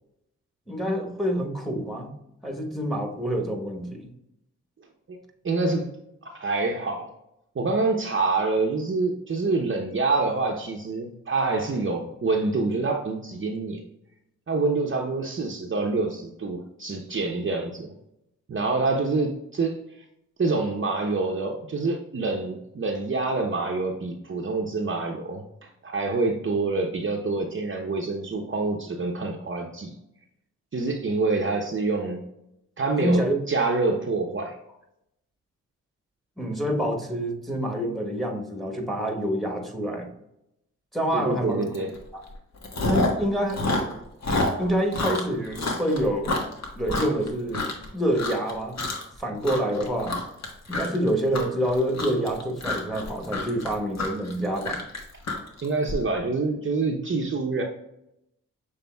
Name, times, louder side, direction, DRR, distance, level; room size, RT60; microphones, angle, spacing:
voice 1, 0.7-2.1 2.4-4.1 33.0-33.4 36.4-40.1 40.9-41.6 42.1-42.2 42.9-43.6 44.6-46.4 46.8-48.8 49.2-50.2 50.7-54.8, equal, ahead, 3 dB, 1.3 m, -27 dB
voice 2, 5.4-5.9 6.2-7.1 7.5-13.8 14.5-18.0 18.5-19.8 20.4-29.9 30.7-32.2 32.8-34.6 41.1-42.0 55.6-57.6, right 3 dB, 40° right, 1 dB, 0.7 m, -26 dB
Chewing mastication, 41.7-42.0 42.3-43.2 43.5-47.9 48.1-48.5 48.8-49.2 49.4-55.9, left 2 dB, 55° left, 1.3 m, -28 dB
6.8 x 3.4 x 2.3 m, 0.81 s
cardioid pair, 50°, 33 cm